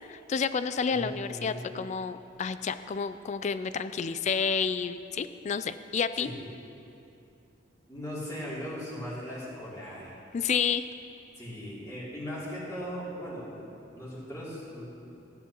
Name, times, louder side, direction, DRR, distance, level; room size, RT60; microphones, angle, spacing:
voice 1, 0.0-6.3 10.3-10.8, left 6 dB, 35° left, 12 dB, 0.3 m, -30 dB
voice 2, 0.9-1.6 6.2-6.4 7.9-10.2 11.4-14.8, equal, 15° left, -8 dB, 2.9 m, -38 dB
15.0 x 10.5 x 2.9 m, 2.7 s
head